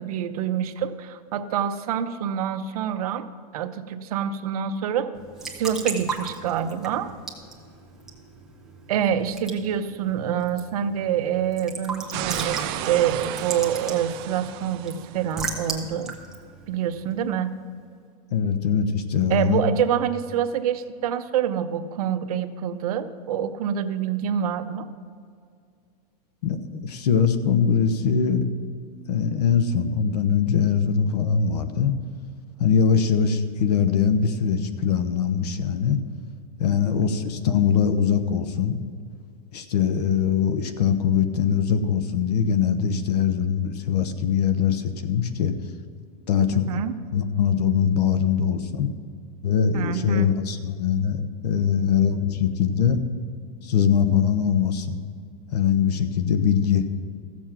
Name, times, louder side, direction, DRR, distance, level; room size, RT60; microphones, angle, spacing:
voice 1, 0.0-3.2 3.5-5.1 5.6-7.1 8.9-16.1 16.7-17.5 19.3-24.8 46.5-46.9 49.7-50.3, right 9 dB, 65° right, 9 dB, 0.8 m, -26 dB
Raindrop / Drip / Trickle dribble, 5.1-17.6, right 4 dB, 5° right, 0.9 m, -37 dB
sound 1, 12.1-15.3, right 12 dB, 35° right, 0.5 m, -33 dB
voice 2, 18.3-19.6 26.4-28.5 29.1-31.9 32.6-36.0 36.6-38.8 39.5-45.5 46.3-46.6 47.1-48.9 49.4-53.0 53.6-55.0 55.5-56.8, left 7 dB, 80° left, 10 dB, 1.1 m, -22 dB
14.5 x 7.3 x 5.9 m, 2.2 s
supercardioid pair, 170°, 20 cm